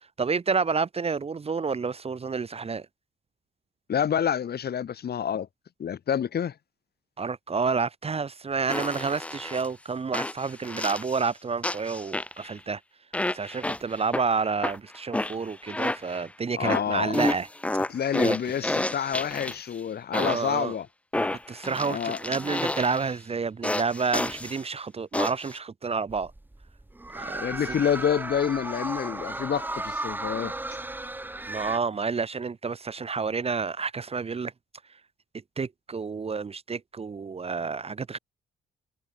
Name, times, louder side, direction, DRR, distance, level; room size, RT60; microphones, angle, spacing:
voice 1, 0.2-2.9 7.2-12.8 13.3-17.5 18.2-18.4 20.1-20.8 21.1-26.3 27.1-27.4 31.5-34.5 35.6-38.2, right 5 dB, 30° right, 1.0 m, -29 dB
voice 2, 3.9-5.5 5.8-6.5 16.6-17.2 17.9-20.9 21.9-22.2 27.3-30.5, left 8 dB, 55° left, 2.1 m, -28 dB
sound 1, 8.7-9.7 10.1-11.3 11.6-12.6 13.1-14.2 14.6-16.3 16.6-19.7 20.1-20.6 21.1-23.1 23.6-24.6 25.1-25.6, left 2 dB, 5° left, 0.4 m, -30 dB
sound 2, 26.1-31.8, right 2 dB, 10° right, 1.1 m, -35 dB
cardioid pair, 90°, 20 cm